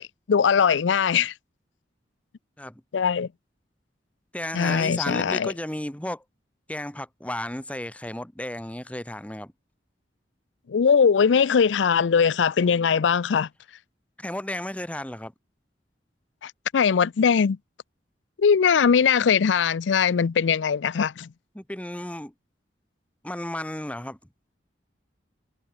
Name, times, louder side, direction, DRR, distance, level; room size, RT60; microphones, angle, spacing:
voice 1, 0.0-1.3 2.9-3.3 4.5-5.5 10.7-13.5 16.4-17.6 18.4-21.3, left 6 dB, 85° left, 0.4 m, -21 dB
voice 2, 4.3-6.2 6.7-9.5 14.2-15.3 21.5-22.3 23.2-24.2, left 1 dB, 10° left, 1.5 m, -33 dB
head